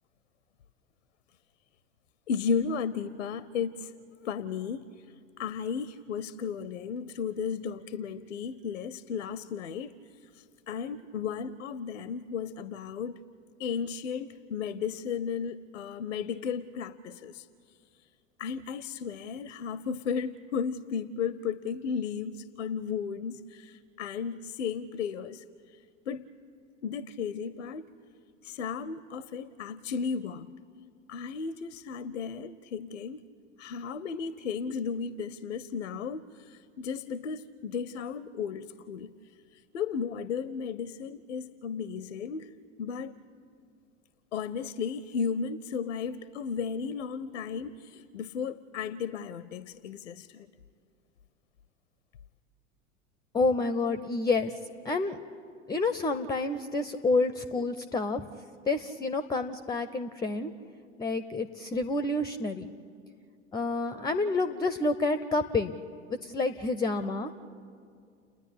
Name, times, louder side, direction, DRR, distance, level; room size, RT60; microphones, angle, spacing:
voice 1, 2.3-3.9 4.2-4.9 5.4-9.9 10.4-13.2 13.6-17.4 18.4-25.4 26.1-26.2 26.8-27.8 28.4-30.5 31.1-33.2 33.6-39.1 39.7-42.5 42.8-43.1 44.3-50.5, left 6 dB, 75° left, 17 dB, 0.7 m, -34 dB
voice 2, 53.3-54.5 54.8-55.2 55.7-58.2 58.7-60.5 61.0-62.7 63.5-65.7 66.2-67.3, left 3 dB, 10° left, 13 dB, 0.5 m, -29 dB
30.0 x 10.0 x 10.0 m, 2.3 s
figure-of-eight pair, 80°, 37 cm